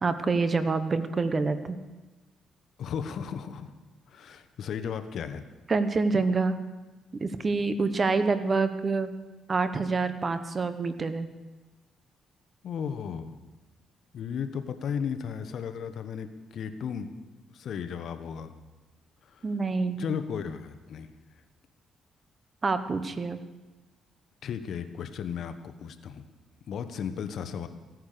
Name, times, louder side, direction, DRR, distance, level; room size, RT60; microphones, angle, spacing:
voice 1, 0.0-1.8 5.7-6.6 7.2-9.1 9.5-11.3 19.4-20.1 22.6-23.4, right 4 dB, 35° right, 11 dB, 1.1 m, -27 dB
voice 2, 2.8-3.7 4.1-5.4 12.6-13.4 14.1-17.1 17.5-18.5 19.3-19.5 20.0-21.1 24.4-26.2 26.7-27.7, left 7 dB, 65° left, 9 dB, 1.1 m, -35 dB
16.0 x 9.7 x 6.8 m, 1.2 s
cardioid pair, 90°, 0 cm